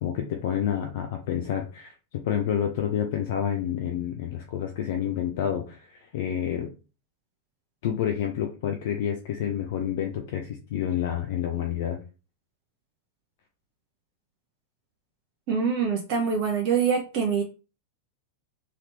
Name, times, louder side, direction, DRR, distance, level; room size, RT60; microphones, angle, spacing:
voice 1, 0.0-6.7 7.8-12.0, left 9 dB, 55° left, 5 dB, 0.5 m, -29 dB
voice 2, 15.5-17.4, right 6 dB, 45° right, 3 dB, 0.6 m, -24 dB
3.0 x 2.8 x 3.0 m, 0.33 s
figure-of-eight pair, 90°, 0 cm